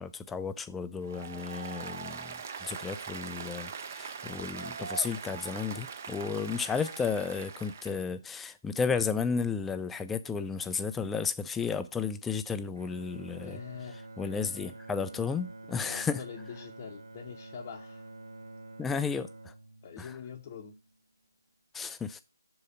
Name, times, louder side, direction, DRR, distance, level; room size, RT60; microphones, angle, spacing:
voice 1, 0.0-13.6 14.2-16.2 18.8-19.5 20.0-20.2 21.7-22.2, left 5 dB, 5° left, 0.3 m, -33 dB
Applause, 1.0-8.0, right 6 dB, 40° right, 0.7 m, -41 dB
Bowed string instrument, 12.7-21.0, right 2 dB, 70° right, 0.7 m, -48 dB
voice 2, 13.4-14.0 15.8-18.1 19.8-20.7, left 7 dB, 30° left, 0.8 m, -44 dB
6.3 x 4.9 x 5.4 m
figure-of-eight pair, 150°, 2 cm